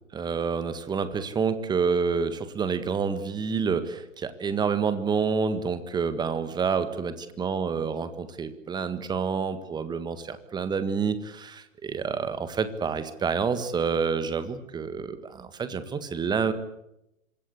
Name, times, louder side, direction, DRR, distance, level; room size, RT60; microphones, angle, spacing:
voice 1, 0.1-16.5, right 5 dB, 10° right, 11 dB, 1.7 m, -28 dB
26.5 x 22.5 x 8.2 m, 0.87 s
figure-of-eight pair, 120°, 41 cm